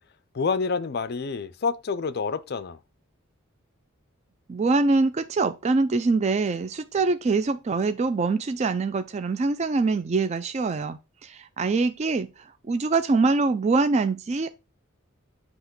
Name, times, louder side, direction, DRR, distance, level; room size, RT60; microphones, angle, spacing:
voice 1, 0.3-2.8, left 5 dB, 50° left, 0.4 m, -28 dB
voice 2, 4.5-12.3 12.7-14.5, right 3 dB, 30° right, 0.3 m, -24 dB
8.0 x 2.9 x 5.9 m
head